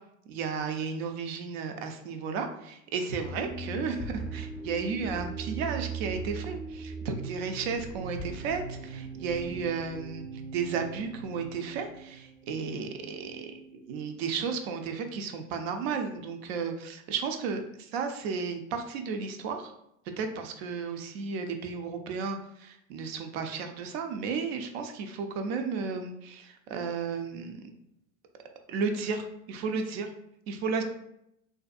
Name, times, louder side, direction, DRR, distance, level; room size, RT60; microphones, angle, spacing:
voice 1, 0.3-10.3 10.5-19.7 20.2-27.7 28.7-30.1 30.5-30.8, right 5 dB, 50° right, 6 dB, 0.5 m, -33 dB
sound 1, 3.2-14.8, right 4 dB, 5° left, 0.5 m, -40 dB
2.6 x 2.2 x 2.4 m, 0.78 s
hypercardioid pair, 95°, 41 cm